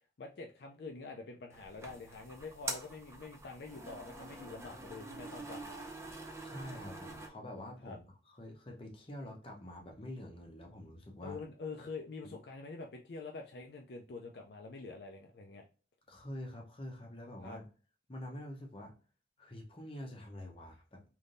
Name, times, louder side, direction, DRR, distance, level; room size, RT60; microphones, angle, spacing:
voice 1, 0.2-5.9 7.8-8.0 11.2-15.6 17.4-17.6, left 3 dB, 60° left, 2 dB, 0.4 m, -46 dB
sound 1, 1.5-7.3, right 2 dB, 15° right, 0.5 m, -46 dB
voice 2, 6.4-11.4 12.2-12.3 16.1-17.7 18.1-18.9 19.4-21.0, left 1 dB, 30° left, 0 dB, 0.8 m, -46 dB
3.4 x 2.6 x 2.5 m, 0.37 s
head